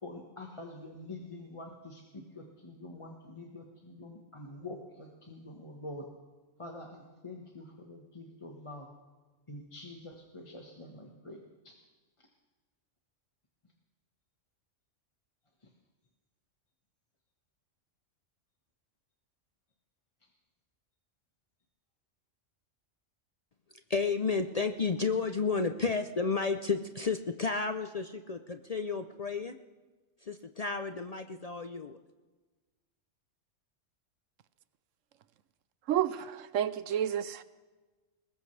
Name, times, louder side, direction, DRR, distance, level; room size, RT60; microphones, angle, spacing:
voice 1, 0.0-6.1 6.6-8.9 9.5-11.7 12.2-12.3 15.6-15.7, left 2 dB, 25° left, 0 dB, 1.3 m, -46 dB
voice 2, 23.9-29.6 30.2-32.0, left 4 dB, 45° left, 7 dB, 0.5 m, -32 dB
voice 3, 35.9-37.4, right 10 dB, 90° right, 15 dB, 1.0 m, -30 dB
21.5 x 20.0 x 3.3 m, 1.3 s
omnidirectional pair, 1.3 m